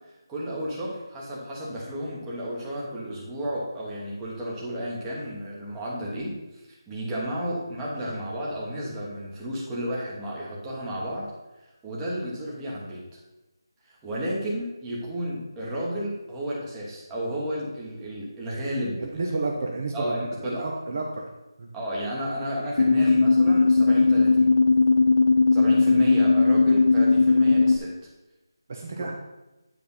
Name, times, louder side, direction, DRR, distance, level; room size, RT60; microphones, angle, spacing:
voice 1, 0.3-11.3 11.8-13.2 13.9-19.0 19.9-20.6 21.7-24.5 25.5-27.9, equal, 10° right, -5 dB, 1.2 m, -32 dB
voice 2, 19.0-21.2 21.6-21.7 28.7-29.1, right 3 dB, 35° right, 0 dB, 0.8 m, -31 dB
sound 1, 22.8-27.8, left 3 dB, 55° left, 0.6 m, -18 dB
9.3 x 3.3 x 5.5 m, 1.0 s
figure-of-eight pair, 170°, 2 cm